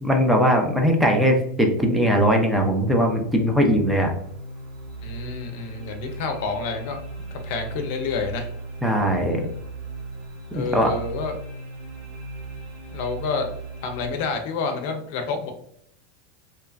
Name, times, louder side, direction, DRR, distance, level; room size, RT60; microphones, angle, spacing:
voice 1, 0.0-4.1 8.8-9.4 10.5-10.9, equal, 5° right, 2 dB, 0.5 m, -20 dB
sound 1, 2.8-14.1, right 3 dB, 70° right, 1.0 m, -37 dB
voice 2, 5.0-8.5 10.5-11.4 12.9-13.5 13.8-15.5, left 4 dB, 65° left, 5 dB, 0.5 m, -29 dB
2.8 x 2.2 x 2.4 m, 0.69 s
supercardioid pair, 125°, 0 cm